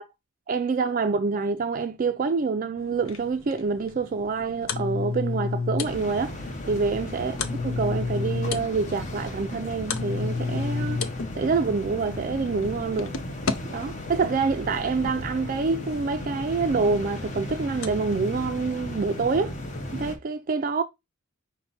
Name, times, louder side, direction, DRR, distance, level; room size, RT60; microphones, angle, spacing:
voice 1, 0.5-6.4 6.7-7.4 7.6-11.0 11.4-13.1 13.7-19.5 19.9-20.8, right 4 dB, 40° right, 0.3 m, -26 dB
sound 1, 2.8-13.5 14.3-15.2 16.4-16.5 17.0-17.1 17.8-18.5, left 4 dB, 80° left, 0.6 m, -32 dB
sound 2, 5.8-20.2, left 1 dB, 35° left, 0.8 m, -36 dB
5.6 x 2.2 x 4.0 m
head